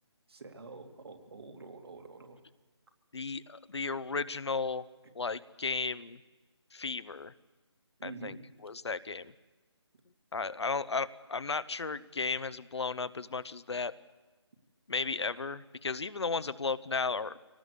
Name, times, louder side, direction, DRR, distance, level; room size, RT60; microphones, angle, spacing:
voice 1, 0.3-2.4 8.0-8.4, right 3 dB, 55° right, 5 dB, 2.7 m, -47 dB
voice 2, 3.1-4.8 5.1-6.2 6.7-7.3 8.0-8.4 8.6-9.3 10.3-13.9 14.9-17.4, left 4 dB, 70° left, 15 dB, 0.9 m, -34 dB
23.5 x 18.0 x 8.2 m, 1.2 s
figure-of-eight pair, 165°, 15 cm